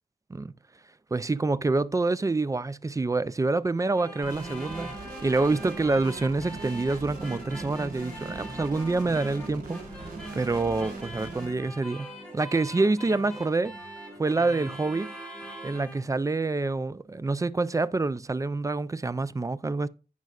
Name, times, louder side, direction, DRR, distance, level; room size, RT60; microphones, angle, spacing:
voice 1, 1.1-13.7 14.2-15.1 15.6-19.9, right 3 dB, 20° right, 0.3 m, -27 dB
sound 1, 4.0-16.0, equal, 5° left, 2.9 m, -42 dB
sound 2, 4.2-11.5, right 2 dB, 65° right, 4.3 m, -40 dB
15.5 x 5.3 x 2.4 m
wide cardioid pair, 130°, 16 cm